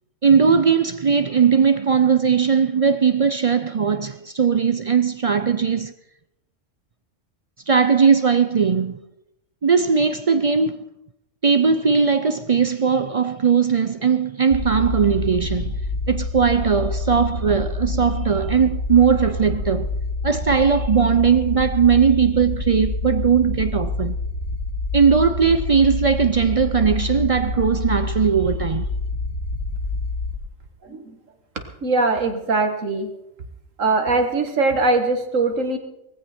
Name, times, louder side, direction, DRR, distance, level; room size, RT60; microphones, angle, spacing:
voice 1, 0.2-5.9 7.7-9.0 9.6-10.8 11.4-15.7 16.1-19.9 20.2-24.2 24.9-28.9, right 6 dB, 50° right, 0.4 m, -19 dB
sound 1, 14.5-30.3, left 2 dB, 50° left, 2.0 m, -27 dB
voice 2, 30.8-31.2 31.8-33.1 33.8-35.8, right 3 dB, 80° right, 2.1 m, -21 dB
18.5 x 15.0 x 4.4 m
omnidirectional pair, 1.3 m